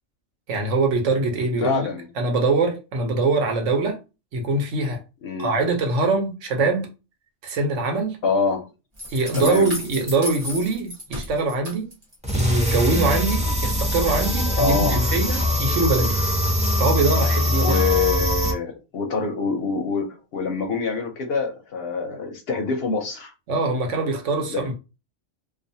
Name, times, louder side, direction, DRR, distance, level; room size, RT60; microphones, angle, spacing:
voice 1, 0.5-1.9 2.2-4.0 4.3-5.0 5.4-6.9 7.4-8.2 9.1-11.9 12.3-16.2 16.8-17.8 23.5-24.7, right 3 dB, 75° right, 1.1 m, -23 dB
voice 2, 1.6-2.1 5.2-5.6 8.2-8.7 9.3-9.7 14.6-15.0 17.5-23.3 24.5-24.7, left 4 dB, 65° left, 0.7 m, -25 dB
sound 1, 9.0-12.3 12.7-13.4, left 1 dB, 35° right, 0.9 m, -35 dB
sound 2, 12.2-18.5, left 1 dB, 10° right, 0.3 m, -22 dB
2.4 x 2.3 x 2.6 m
omnidirectional pair, 1.3 m